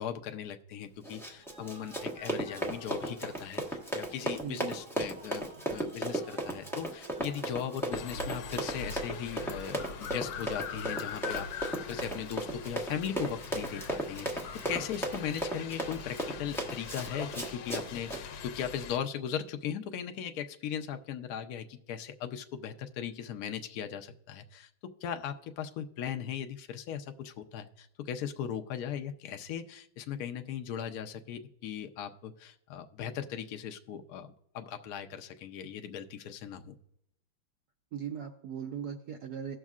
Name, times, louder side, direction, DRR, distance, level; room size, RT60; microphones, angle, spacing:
voice 1, 0.0-24.7 25.0-36.8, left 8 dB, 65° left, 6 dB, 1.0 m, -38 dB
Run, 1.0-18.2, right 1 dB, ahead, 0.8 m, -36 dB
sound 1, 1.1-17.4, right 3 dB, 50° right, 2.8 m, -55 dB
voice 2, 4.4-4.7 37.9-39.6, right 8 dB, 70° right, 5 dB, 1.0 m, -38 dB
sound 2, 7.9-19.0, left 6 dB, 80° left, 1.5 m, -42 dB
18.0 x 6.3 x 2.4 m, 0.78 s
omnidirectional pair, 2.2 m